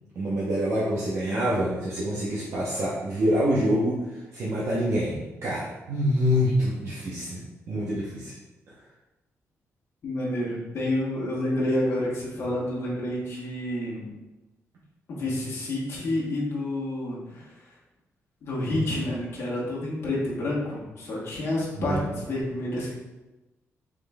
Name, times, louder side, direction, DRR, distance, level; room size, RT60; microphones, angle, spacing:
voice 1, 0.2-7.4 7.7-8.3 21.8-22.2, equal, 60° right, -7 dB, 0.8 m, -26 dB
voice 2, 10.0-14.1 15.1-17.4 18.4-22.9, left 1 dB, 55° left, -6 dB, 1.1 m, -29 dB
3.7 x 3.1 x 3.5 m, 1.1 s
wide cardioid pair, 180°, 5 cm